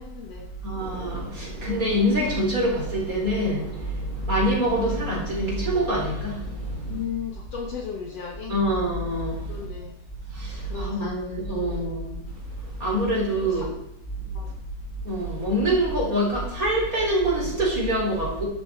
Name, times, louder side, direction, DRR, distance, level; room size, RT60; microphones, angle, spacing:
voice 1, 0.0-0.5 6.9-8.6 9.5-9.9 10.6-11.2 11.6-11.8 13.4-13.7 14.3-14.5, left 8 dB, 60° left, 1 dB, 2.0 m, -36 dB
voice 2, 0.6-7.0 8.5-9.7 10.3-13.7 15.0-18.4, right 1 dB, 25° right, -3 dB, 4.9 m, -25 dB
12.5 x 12.0 x 4.8 m, 0.84 s
omnidirectional pair, 3.8 m